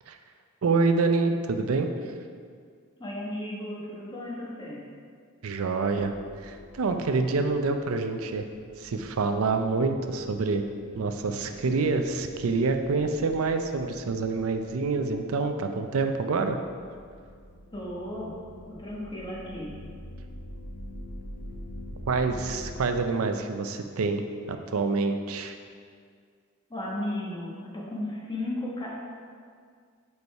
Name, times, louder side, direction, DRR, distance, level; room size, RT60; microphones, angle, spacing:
voice 1, 0.6-1.9 5.4-8.4 8.8-10.6 10.9-16.6 22.1-24.2 24.5-25.6, right 4 dB, 80° right, 6 dB, 0.5 m, -27 dB
voice 2, 3.0-4.8 17.7-18.3 18.7-19.7 26.7-28.9, left 1 dB, 20° left, -4 dB, 1.2 m, -34 dB
sound 1, 5.8-23.1, equal, 70° left, 0.6 m, -46 dB
5.2 x 4.7 x 4.6 m, 2.1 s
head